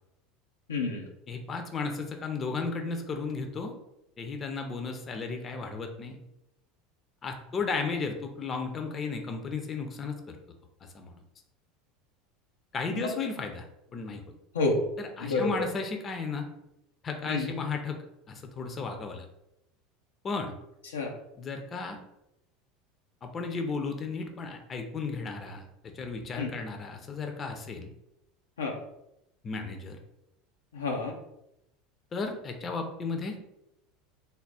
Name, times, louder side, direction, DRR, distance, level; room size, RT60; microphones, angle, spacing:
voice 1, 0.7-1.1 12.9-13.2 14.5-14.8 15.2-15.7 17.3-17.6 20.8-21.2 26.4-26.5 28.6-28.8 30.7-31.1, left 3 dB, 85° left, 0 dB, 0.6 m, -29 dB
voice 2, 1.3-3.7 4.2-6.2 7.2-10.4 10.9-11.1 12.7-13.6 13.9-14.2 15.0-16.5 17.0-18.0 18.3-19.2 20.2-20.5 21.4-22.0 23.2-27.9 29.4-30.0 32.1-33.4, left 4 dB, 35° left, 4 dB, 0.7 m, -34 dB
3.5 x 2.1 x 4.0 m, 0.86 s
hypercardioid pair, 80°, 0 cm